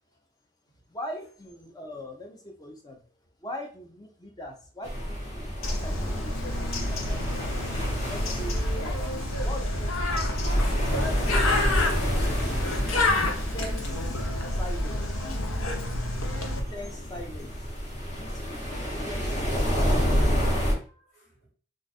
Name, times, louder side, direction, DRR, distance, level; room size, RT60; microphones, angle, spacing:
voice 1, 0.9-3.0 3.4-7.5 8.1-9.2 9.4-11.1 13.1-15.4 16.7-17.7 18.2-20.3, left 1 dB, 20° left, 0.5 m, -42 dB
sound 1, 4.8-20.7, equal, 35° left, 1.0 m, -30 dB
Bird, 5.6-16.6, left 1 dB, 85° left, 0.7 m, -28 dB
voice 2, 15.7-17.1 20.8-21.5, right 2 dB, 60° left, 1.6 m, -58 dB
2.4 x 2.4 x 4.0 m
head